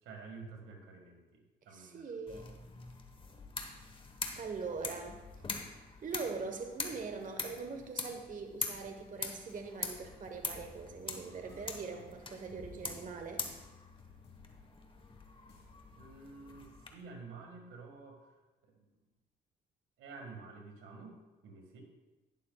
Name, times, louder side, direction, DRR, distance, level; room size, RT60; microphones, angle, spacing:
voice 1, 0.0-2.0 11.9-12.1 15.9-18.9 20.0-21.2 21.4-21.8, right 4 dB, 90° right, 2 dB, 1.8 m, -50 dB
voice 2, 1.7-2.5 4.3-5.2 6.0-13.4, right 4 dB, 40° right, 4 dB, 1.1 m, -42 dB
sound 1, 2.3-16.9, left 3 dB, 25° left, 1.1 m, -44 dB
sound 2, 9.0-17.1, left 3 dB, 60° left, 2.9 m, -61 dB
11.5 x 10.5 x 2.3 m, 1.1 s
cardioid pair, 90°, 20 cm